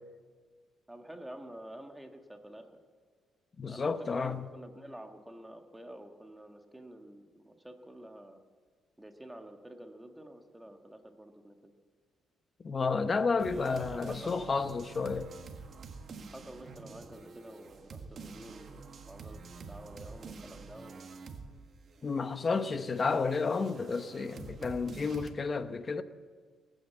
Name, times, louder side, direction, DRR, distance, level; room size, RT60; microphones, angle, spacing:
voice 1, 0.9-2.7 3.7-8.4 9.0-11.7 13.4-14.4 16.3-21.1 22.0-22.8, right 1 dB, 10° right, 1.5 m, -49 dB
voice 2, 3.6-4.5 12.6-15.3 22.0-26.0, left 4 dB, 35° left, 0.9 m, -31 dB
sound 1, 13.4-21.6 21.8-25.3, right 4 dB, 50° right, 1.6 m, -48 dB
19.5 x 9.2 x 8.1 m
cardioid pair, 90°, 0 cm